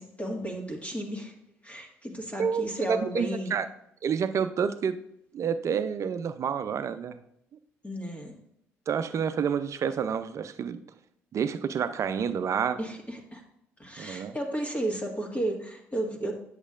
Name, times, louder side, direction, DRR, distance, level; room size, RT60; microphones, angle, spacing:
voice 1, 0.0-1.3 1.6-3.6 7.8-8.3 12.8-13.4 13.8-16.3, right 1 dB, 20° left, 1 dB, 1.8 m, -33 dB
voice 2, 2.4-3.7 4.0-5.0 5.3-7.2 8.9-10.8 11.3-12.8 14.0-14.4, right 7 dB, 45° right, 12 dB, 0.5 m, -29 dB
8.1 x 7.2 x 2.5 m, 0.77 s
hypercardioid pair, 55°, 7 cm